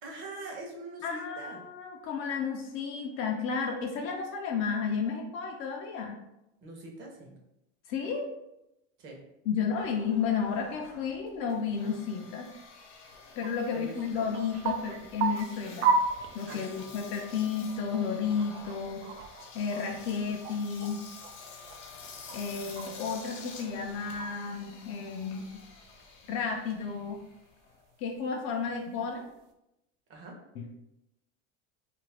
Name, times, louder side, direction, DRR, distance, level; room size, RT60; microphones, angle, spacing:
voice 1, 0.0-1.6 6.6-7.4 9.0-9.2 13.7-14.3 16.5-16.8 30.1-30.4, right 2 dB, 35° right, 0 dB, 0.7 m, -43 dB
voice 2, 1.0-6.2 7.9-8.3 9.5-12.5 13.4-15.9 16.3-19.0 19.5-21.0 22.3-25.4 26.3-27.2 28.0-29.3 30.6-30.7, left 6 dB, 40° left, 1 dB, 0.4 m, -32 dB
Engine, 9.8-28.2, left 4 dB, 60° left, 0.8 m, -49 dB
sound 1, 12.0-12.1 12.4-12.5 12.8-12.9 13.2-13.5 13.8-16.8 17.3-17.4 17.7-21.3 21.6-23.3 23.7-24.6 25.1-27.5 27.9-28.0 29.0-29.3, right 4 dB, 85° right, 0.6 m, -34 dB
2.7 x 2.4 x 3.3 m, 0.88 s
supercardioid pair, 150°, 33 cm